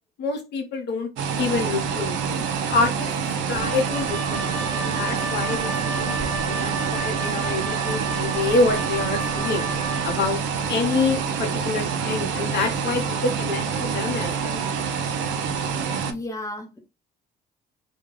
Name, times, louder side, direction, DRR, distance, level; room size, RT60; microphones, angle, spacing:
voice 1, 0.2-1.1 1.4-2.4 2.7-3.2 3.5-9.7 10.0-10.4 10.7-14.6, left 3 dB, 65° left, 0.7 m, -27 dB
sound 1, 1.2-16.1, right 6 dB, 75° right, 0.6 m, -27 dB
Wind instrument woodwind instrument, 3.5-10.2, right 3 dB, 20° right, 1.1 m, -32 dB
voice 2, 16.0-16.8, left 1 dB, 15° left, 0.8 m, -33 dB
2.3 x 2.2 x 3.1 m
supercardioid pair, 75°, 19 cm